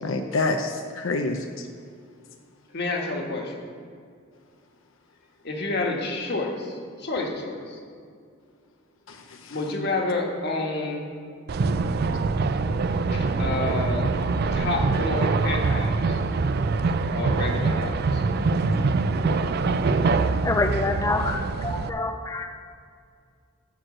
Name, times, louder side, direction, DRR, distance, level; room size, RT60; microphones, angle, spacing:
voice 1, 0.0-1.7 9.1-9.6, left 3 dB, 80° left, 5 dB, 0.7 m, -28 dB
voice 2, 2.7-3.6 5.4-7.8 9.5-11.1 13.1-14.1 14.5-16.2 17.1-18.2, left 2 dB, 55° left, 0 dB, 1.6 m, -29 dB
sound 1, 11.5-21.9, right 3 dB, 55° right, 0.4 m, -24 dB
voice 3, 20.4-22.5, left 3 dB, 15° left, 5 dB, 0.4 m, -27 dB
12.5 x 4.6 x 7.7 m, 2.2 s
head